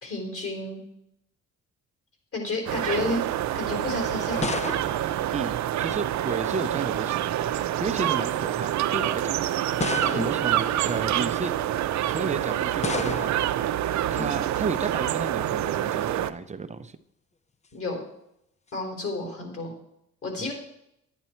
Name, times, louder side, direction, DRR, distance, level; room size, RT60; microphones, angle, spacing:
voice 1, 0.0-0.8 2.3-3.2 3.5-4.6 7.8-8.0 10.1-10.3 14.1-14.3 17.7-18.0 18.7-19.7 20.2-20.5, left 2 dB, 50° left, 1 dB, 4.2 m, -31 dB
sound 1, 2.7-16.3, right 12 dB, 70° right, 0.6 m, -27 dB
sound 2, 3.8-6.2 7.2-7.6 8.5-8.6 9.8-10.6 12.8-13.6, left 4 dB, 25° left, 0.6 m, -33 dB
voice 2, 5.3-7.5 7.8-11.6 12.1-13.4 14.1-17.0 20.4-20.5, right 4 dB, 25° right, 10 dB, 0.7 m, -33 dB
11.0 x 9.2 x 4.4 m, 0.79 s
cardioid pair, 90°, 30 cm